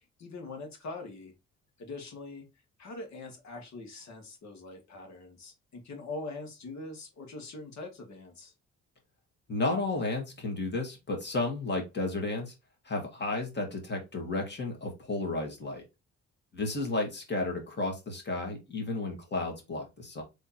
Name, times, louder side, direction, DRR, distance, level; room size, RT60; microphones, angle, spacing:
voice 1, 0.2-1.3 1.8-2.5 2.8-8.5, left 3 dB, 65° left, 3 dB, 2.0 m, -43 dB
voice 2, 9.5-12.5 12.8-15.8 16.5-20.2, left 2 dB, 35° left, 2 dB, 2.2 m, -32 dB
3.6 x 3.4 x 4.3 m, 0.24 s
cardioid pair, 90°, 30 cm